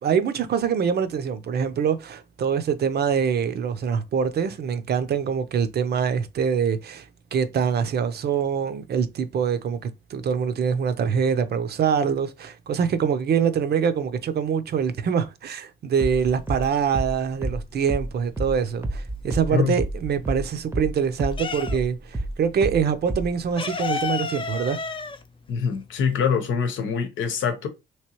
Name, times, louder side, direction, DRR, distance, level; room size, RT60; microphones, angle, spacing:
voice 1, 0.0-24.8, right 7 dB, 55° right, 0.6 m, -24 dB
sound 1, 16.0-20.9 21.2-23.4, right 1 dB, 10° right, 0.7 m, -29 dB
Cat Meowing, 16.2-17.1 17.4-19.4 19.7-22.1 22.4-22.5 22.8-26.4, left 5 dB, 25° left, 0.5 m, -32 dB
voice 2, 25.5-27.7, left 6 dB, 75° left, 0.9 m, -24 dB
3.1 x 3.0 x 2.9 m
cardioid pair, 90°, 20 cm